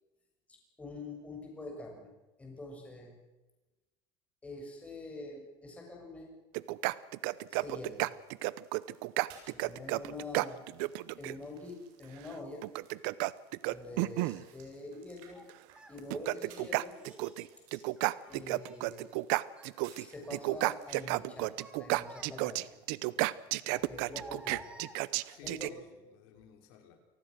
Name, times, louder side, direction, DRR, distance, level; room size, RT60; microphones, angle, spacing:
voice 1, 0.8-2.1 2.4-3.2 4.4-6.3 7.5-8.1 9.4-10.6 11.2-12.6 13.7-15.4 15.9-16.9 18.3-19.0 19.9-21.5 21.8-22.7 23.7-24.6 25.4-25.7, left 2 dB, 15° left, 0 dB, 6.8 m, -45 dB
sound 1, 6.5-11.3 12.6-14.4 15.5-15.6 16.0-17.5 17.7-20.0 20.3-25.7, right 21 dB, 85° right, 0.7 m, -32 dB
sound 2, 7.2-21.1, right 7 dB, 65° right, 7.6 m, -62 dB
Child speech kid speaking, 14.2-14.4 15.3-16.0 16.9-17.5 18.0-19.2 19.5-19.8 20.2-20.8 21.3-22.7 23.7-25.4, right 2 dB, 10° right, 3.2 m, -53 dB
voice 2, 23.1-23.5 25.3-27.0, left 7 dB, 80° left, 4 dB, 5.0 m, -56 dB
28.5 x 19.5 x 6.4 m, 1.0 s
cardioid pair, 155°, 10 cm